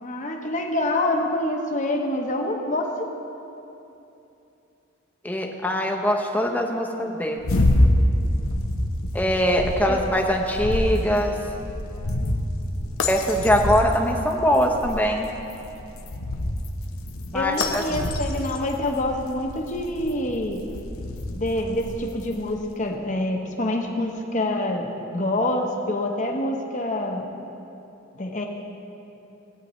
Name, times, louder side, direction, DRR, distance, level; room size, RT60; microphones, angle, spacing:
voice 1, 0.0-2.9 9.9-10.0 17.3-20.6 21.3-27.2 28.2-28.4, left 1 dB, 35° left, 2 dB, 1.0 m, -26 dB
voice 2, 5.2-7.4 9.1-11.4 13.1-15.3 17.3-17.8, equal, 10° left, 2 dB, 0.8 m, -22 dB
sound 1, 7.4-22.6, left 1 dB, 85° left, 0.9 m, -27 dB
18.0 x 9.2 x 3.1 m, 2.8 s
head